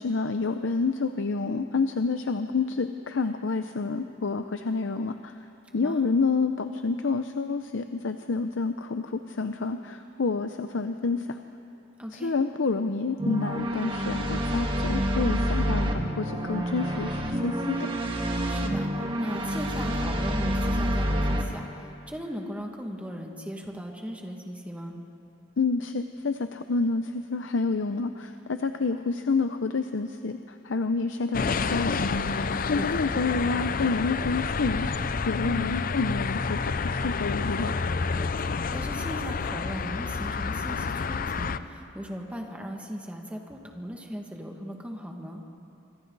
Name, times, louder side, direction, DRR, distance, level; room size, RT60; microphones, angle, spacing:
voice 1, 0.0-5.4 5.7-11.4 12.1-17.8 25.6-32.2 32.7-37.7, left 4 dB, 85° left, 8 dB, 0.7 m, -28 dB
voice 2, 5.8-6.1 12.0-12.4 18.5-25.0 32.7-33.0 35.4-35.7 38.4-45.4, equal, 5° right, 1 dB, 2.0 m, -38 dB
sound 1, 13.2-21.4, equal, 25° right, 1.9 m, -28 dB
sound 2, 31.3-41.6, left 4 dB, 45° left, 0.6 m, -29 dB
26.0 x 26.0 x 4.0 m, 2.8 s
head